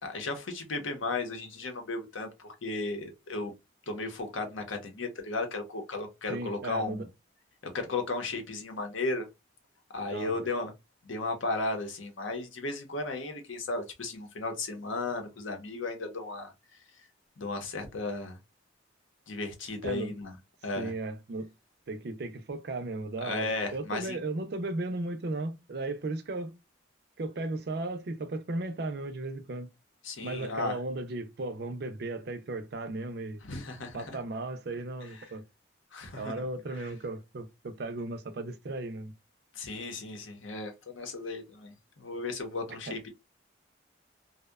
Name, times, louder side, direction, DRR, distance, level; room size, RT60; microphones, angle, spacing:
voice 1, 0.0-3.5 3.9-7.1 7.7-9.3 9.9-10.7 11.0-16.5 17.4-18.4 19.3-20.4 20.6-20.9 23.2-24.2 30.0-30.8 33.4-34.1 35.9-36.3 39.5-43.1, left 3 dB, 85° left, 0.7 m, -35 dB
voice 2, 6.3-7.1 10.1-10.5 19.8-20.1 20.8-21.5 21.9-26.5 27.2-29.7 30.2-33.4 33.9-35.4 36.1-39.1 42.7-43.0, right 2 dB, 55° right, 0.4 m, -36 dB
2.7 x 2.1 x 2.2 m
head